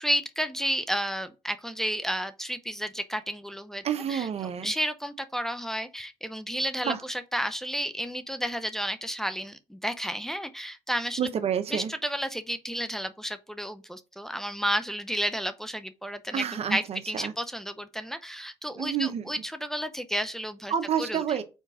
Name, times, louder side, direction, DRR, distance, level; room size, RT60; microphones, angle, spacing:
voice 1, 0.0-3.8 4.1-4.3 4.6-11.2 11.7-21.4, equal, 5° left, 0.7 m, -32 dB
voice 2, 3.8-4.7 6.8-7.0 11.2-11.9 16.3-17.3 18.8-19.2 20.7-21.4, right 8 dB, 55° right, 0.9 m, -29 dB
4.5 x 4.5 x 5.0 m
supercardioid pair, 70°, 12 cm